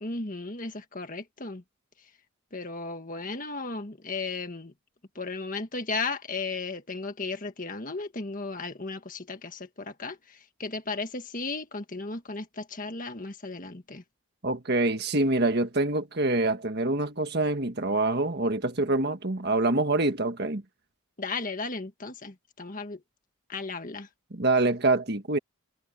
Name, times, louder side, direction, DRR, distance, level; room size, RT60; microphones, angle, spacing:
voice 1, 0.0-1.6 2.5-4.7 5.2-14.0 21.2-23.0 23.5-24.1, left 3 dB, 40° left, 1.7 m, -35 dB
voice 2, 14.4-20.6 24.3-25.4, right 2 dB, 50° right, 1.6 m, -25 dB
head